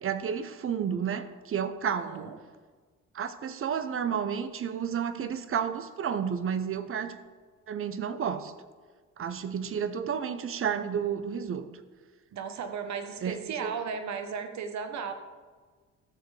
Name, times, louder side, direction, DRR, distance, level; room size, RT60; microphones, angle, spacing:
voice 1, 0.0-2.4 3.1-7.2 7.7-8.5 9.2-11.7 13.2-13.7, right 7 dB, 45° right, 12 dB, 0.8 m, -31 dB
voice 2, 1.8-2.4 12.3-15.1, right 6 dB, 65° right, 7 dB, 1.1 m, -35 dB
13.5 x 7.4 x 3.3 m, 1.4 s
cardioid pair, 90°, 30 cm